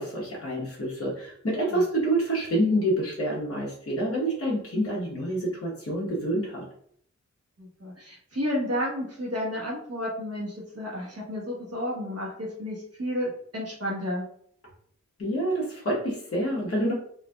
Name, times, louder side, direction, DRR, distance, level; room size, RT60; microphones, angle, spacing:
voice 1, 0.0-6.6 15.2-16.9, right 1 dB, 50° left, -5 dB, 1.1 m, -27 dB
voice 2, 7.6-14.2, equal, 55° right, -4 dB, 1.2 m, -32 dB
4.0 x 2.7 x 2.3 m, 0.64 s
wide cardioid pair, 70°, 29 cm